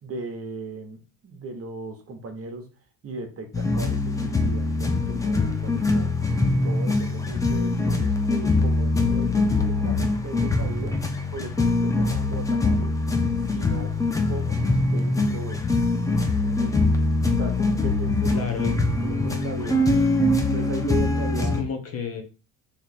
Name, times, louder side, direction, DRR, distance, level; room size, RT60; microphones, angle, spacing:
voice 1, 0.0-2.7 3.0-6.1 6.4-11.0 11.3-12.9 13.5-14.0 14.3-15.6 16.4-16.9 17.4-18.3 19.0-19.8 20.4-21.5, right 3 dB, 30° right, 5 dB, 0.9 m, -37 dB
sound 1, 3.5-21.6, left 2 dB, 10° left, 0.4 m, -23 dB
voice 2, 18.3-18.7 21.4-22.2, left 6 dB, 35° left, 5 dB, 0.8 m, -31 dB
3.3 x 2.9 x 4.1 m, 0.33 s
supercardioid pair, 105°, 44 cm